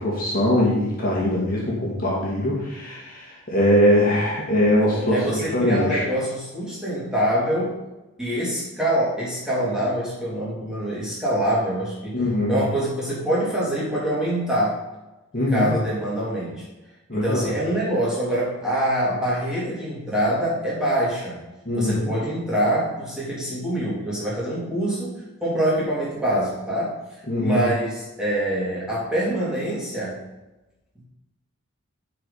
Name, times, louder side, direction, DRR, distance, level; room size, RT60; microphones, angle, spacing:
voice 1, 0.0-6.0 12.1-12.6 15.3-15.7 17.1-17.5 21.7-21.9 27.3-27.6, left 1 dB, 40° left, -5 dB, 2.4 m, -22 dB
voice 2, 4.8-7.8 8.2-12.2 12.5-14.8 15.5-16.6 17.1-21.4 21.8-25.1 25.4-26.9 27.4-30.2, right 1 dB, 5° right, -8 dB, 3.5 m, -25 dB
11.5 x 5.0 x 5.7 m, 1.0 s
head